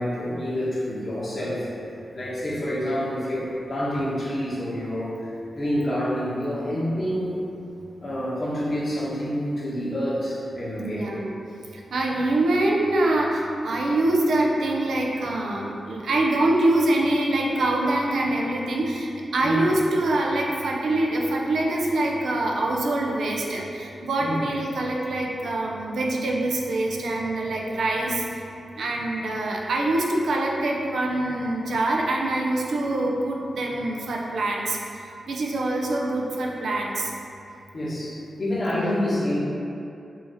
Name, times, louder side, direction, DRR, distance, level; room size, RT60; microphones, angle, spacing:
voice 1, 0.0-1.7 2.1-5.1 5.5-7.4 8.0-11.1 19.4-19.6 24.2-24.4 37.7-39.4, equal, 60° left, -8 dB, 1.3 m, -27 dB
voice 2, 10.8-11.3 11.7-28.2 28.8-34.8 35.3-37.1 38.8-38.9, right 2 dB, 80° right, -1 dB, 0.5 m, -24 dB
5.6 x 2.5 x 2.7 m, 2.6 s
supercardioid pair, 40°, 0 cm